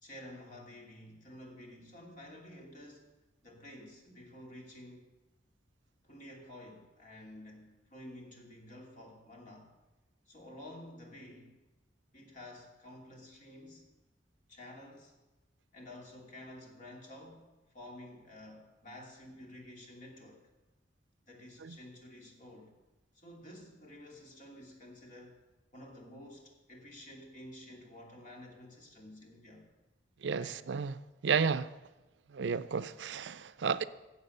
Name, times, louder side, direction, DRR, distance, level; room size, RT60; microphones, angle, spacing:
voice 1, 0.0-3.1 3.4-5.1 6.0-9.7 10.3-11.6 12.1-13.9 14.5-15.1 15.7-20.4 21.3-22.8 23.1-25.4 25.7-29.7 30.4-30.6, left 1 dB, 45° left, 2.7 m, -51 dB
voice 2, 30.2-30.9 31.2-31.7 32.3-33.8, right 6 dB, 70° right, 0.5 m, -32 dB
17.0 x 7.3 x 6.6 m
head